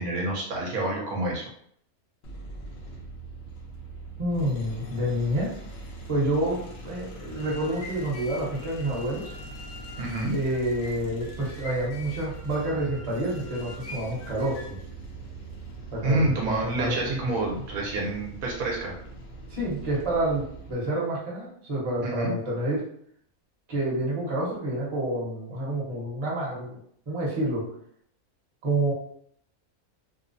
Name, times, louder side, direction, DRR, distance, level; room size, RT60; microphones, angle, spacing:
voice 1, 0.0-1.4 10.0-10.3 16.0-18.9 22.0-22.3, right 2 dB, 75° right, -1 dB, 1.0 m, -28 dB
sound 1, 2.2-20.7, right 2 dB, 65° left, 0.7 m, -42 dB
voice 2, 4.2-5.6 6.1-9.3 10.3-14.8 15.9-17.0 19.5-22.8 23.7-26.8 27.1-27.6 28.6-28.9, right 1 dB, 30° right, -5 dB, 0.7 m, -28 dB
sound 2, 7.2-14.8, left 3 dB, 90° left, 1.1 m, -45 dB
2.8 x 2.0 x 2.5 m, 0.66 s
omnidirectional pair, 1.5 m